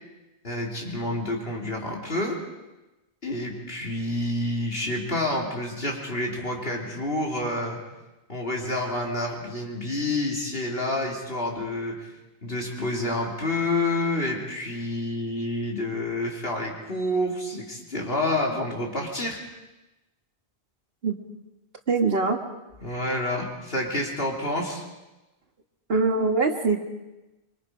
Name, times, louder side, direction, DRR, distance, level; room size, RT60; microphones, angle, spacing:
voice 1, 0.4-2.4 3.2-7.8 8.3-12.0 12.4-19.4 22.8-24.8, left 1 dB, 65° left, 0 dB, 3.5 m, -28 dB
voice 2, 21.9-22.4 25.9-26.8, right 3 dB, 65° right, 5 dB, 1.9 m, -22 dB
25.0 x 24.0 x 5.1 m, 1.0 s
omnidirectional pair, 1.1 m